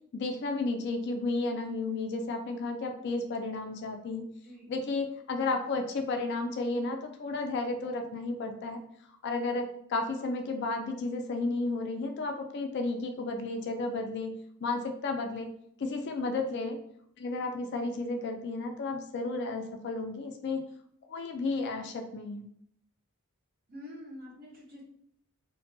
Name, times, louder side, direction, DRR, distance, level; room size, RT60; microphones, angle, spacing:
voice 1, 0.1-4.3 4.7-8.8 9.2-14.3 14.6-15.5 15.8-16.8 17.2-20.6 21.1-22.5, left 3 dB, 50° left, 4 dB, 0.3 m, -33 dB
voice 2, 23.7-24.8, left 1 dB, 45° right, -4 dB, 0.8 m, -46 dB
2.6 x 2.2 x 2.5 m, 0.69 s
head